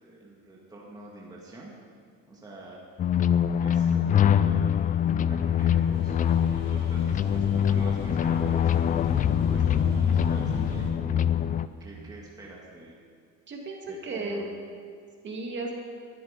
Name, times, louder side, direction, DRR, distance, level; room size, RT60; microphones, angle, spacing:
voice 1, 0.0-1.7 2.3-3.1 3.6-6.2 6.7-12.9 13.9-14.5, right 2 dB, 10° right, -4 dB, 2.2 m, -46 dB
sound 1, 3.0-11.7, left 9 dB, 25° left, 0.3 m, -24 dB
sound 2, 5.3-10.9, right 1 dB, 60° right, 4.2 m, -39 dB
voice 2, 9.9-10.8 13.5-14.5 15.2-15.7, right 2 dB, 30° right, 0 dB, 2.7 m, -36 dB
19.5 x 13.0 x 5.3 m, 2.2 s
cardioid pair, 150°, 34 cm